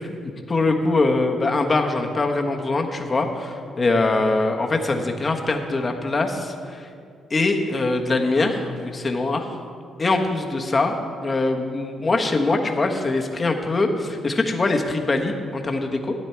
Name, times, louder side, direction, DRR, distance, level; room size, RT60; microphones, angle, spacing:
voice 1, 0.5-6.9 7.3-9.6 10.0-11.0 11.2-16.1, left 2 dB, 25° left, 3 dB, 1.2 m, -23 dB
13.0 x 9.8 x 4.6 m, 2.2 s
cardioid pair, 110°, 0 cm